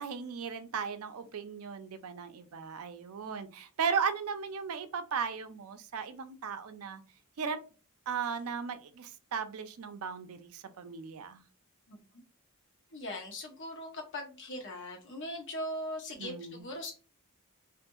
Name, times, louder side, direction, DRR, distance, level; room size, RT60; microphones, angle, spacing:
voice 1, 0.0-7.0 7.4-7.6 8.1-11.4 16.2-16.6, right 6 dB, 70° right, 0.4 m, -36 dB
voice 2, 12.9-16.9, left 1 dB, 55° left, 0.9 m, -40 dB
2.7 x 2.5 x 2.3 m
head